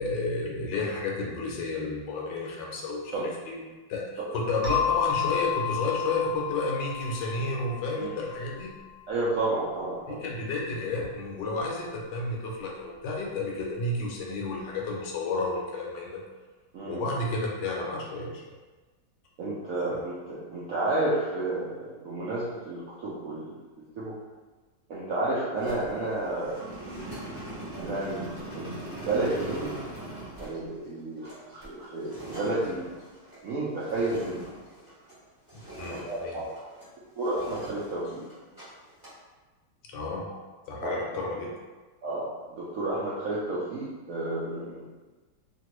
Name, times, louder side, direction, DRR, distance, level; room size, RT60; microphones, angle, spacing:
voice 1, 0.0-3.6 3.9-4.1 4.3-8.7 10.1-16.2 16.9-18.4 19.9-20.0 35.8-36.4 39.9-40.3 40.7-41.5, left 2 dB, 75° left, -2 dB, 1.2 m, -31 dB
sound 1, 4.6-9.0, left 11 dB, 50° right, 1.0 m, -32 dB
voice 2, 9.1-10.2 16.7-17.0 19.4-23.6 24.0-24.2 24.9-26.6 27.4-29.8 30.4-32.9 33.4-34.4 35.9-36.5 37.2-38.2 40.8-41.0 42.0-44.9, right 2 dB, 70° right, -8 dB, 0.8 m, -31 dB
sound 2, 25.5-35.2 35.5-36.9 37.2-38.6 38.9-39.2, right 1 dB, 15° right, 1.0 m, -41 dB
2.9 x 2.5 x 3.0 m, 1.3 s
omnidirectional pair, 2.0 m